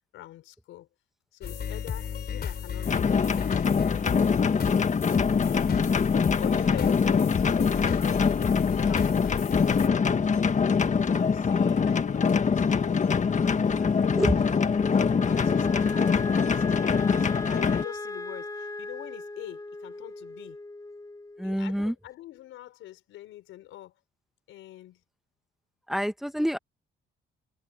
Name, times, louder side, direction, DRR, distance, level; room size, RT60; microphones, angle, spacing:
voice 1, 0.1-0.9 1.3-4.4 6.4-8.2 8.8-10.0 11.0-14.6 15.2-20.6 21.4-23.9 24.5-25.0, left 14 dB, 90° left, 5.0 m, -44 dB
sound 1, 1.4-9.9, left 7 dB, 55° left, 3.2 m, -34 dB
sound 2, 2.9-17.8, left 5 dB, 40° left, 1.5 m, -24 dB
Wind instrument woodwind instrument, 13.2-21.6, left 2 dB, 20° left, 3.3 m, -38 dB
voice 2, 21.4-21.9 25.9-26.6, equal, ahead, 1.8 m, -27 dB
cardioid pair, 90°, 20 cm